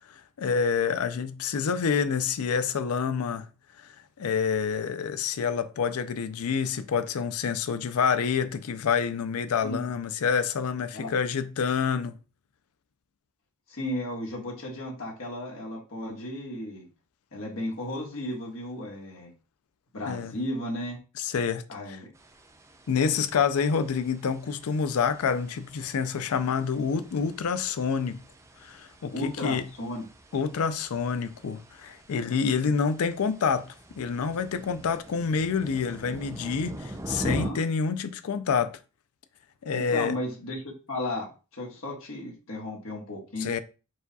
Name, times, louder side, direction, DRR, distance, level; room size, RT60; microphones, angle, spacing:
voice 1, 0.1-3.5 4.2-12.2 20.1-20.3 21.2-22.0 22.9-28.2 28.6-29.7 30.3-38.8 39.6-40.2 43.4-43.6, left 6 dB, 85° left, 0.4 m, -27 dB
voice 2, 13.7-16.8 17.3-19.3 19.9-21.0 21.7-22.1 29.1-30.1 37.1-37.6 39.7-40.6 40.9-43.5, left 1 dB, 70° left, 1.3 m, -34 dB
sound 1, 22.1-37.5, right 1 dB, 15° right, 0.4 m, -43 dB
4.8 x 2.3 x 4.0 m
head